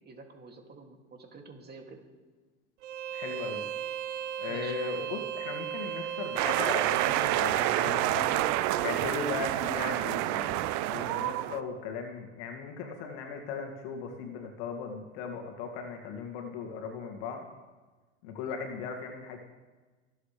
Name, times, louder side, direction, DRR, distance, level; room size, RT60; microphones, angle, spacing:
voice 1, 0.0-2.0 4.4-4.8, right 4 dB, 25° right, 2 dB, 2.5 m, -49 dB
Bowed string instrument, 2.8-7.6, right 10 dB, 75° right, 1.0 m, -36 dB
voice 2, 3.1-3.6 4.4-8.5 8.8-17.5 18.2-19.4, left 5 dB, 65° left, 4 dB, 2.2 m, -38 dB
sound 1, 6.4-11.6, right 15 dB, 50° right, 0.7 m, -28 dB
24.0 x 8.1 x 3.4 m, 1.3 s
hypercardioid pair, 90°, 36 cm